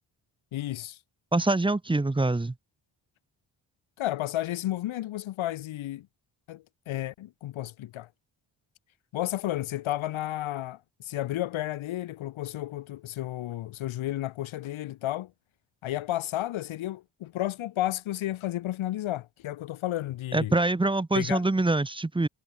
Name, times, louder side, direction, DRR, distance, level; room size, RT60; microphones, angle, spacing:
voice 1, 0.5-1.0 4.0-6.1 6.5-8.1 9.1-15.3 15.8-20.5 21.1-21.4, left 14 dB, 85° left, 0.9 m, -32 dB
voice 2, 1.3-2.5 20.3-22.3, right 2 dB, 10° right, 0.8 m, -25 dB
wide cardioid pair, 135°, 46 cm